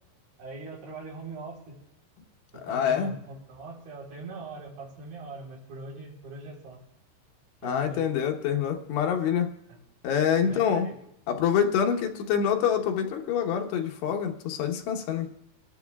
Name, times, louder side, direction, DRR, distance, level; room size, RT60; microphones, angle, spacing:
voice 1, 0.4-1.8 2.5-6.8 7.6-8.3 9.7-9.8 10.4-11.0, right 2 dB, 60° right, -3 dB, 5.5 m, -41 dB
voice 2, 2.7-3.1 7.6-9.5 10.0-10.9 11.3-15.3, left 8 dB, 90° left, 3 dB, 3.3 m, -26 dB
29.5 x 11.5 x 2.3 m, 0.81 s
omnidirectional pair, 4.7 m